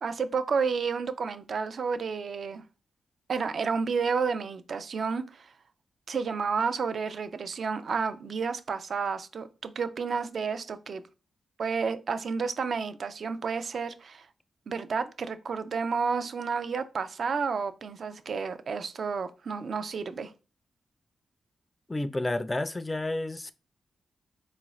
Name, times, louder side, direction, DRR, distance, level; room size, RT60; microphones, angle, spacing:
voice 1, 0.0-2.6 3.3-5.5 6.1-11.0 11.6-14.3 14.7-20.3, right 5 dB, 60° right, 0.4 m, -31 dB
voice 2, 21.9-23.5, left 2 dB, 20° left, 0.3 m, -30 dB
3.9 x 2.4 x 3.0 m
cardioid pair, 65°, 0 cm